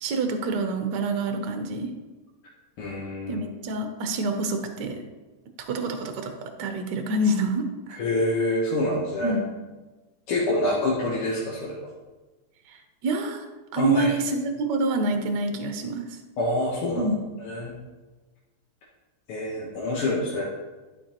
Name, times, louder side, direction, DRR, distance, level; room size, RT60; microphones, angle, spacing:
voice 1, 0.0-1.9 3.3-5.0 5.7-8.0 9.2-9.5 13.0-13.4 13.7-16.0 17.0-17.1, right 2 dB, 65° right, 5 dB, 1.3 m, -27 dB
voice 2, 2.8-3.5 7.9-9.4 10.3-11.9 13.8-14.1 16.4-17.1 17.4-17.8 19.3-20.4, left 1 dB, 80° left, -4 dB, 2.0 m, -26 dB
11.5 x 5.2 x 2.9 m, 1.2 s
omnidirectional pair, 2.4 m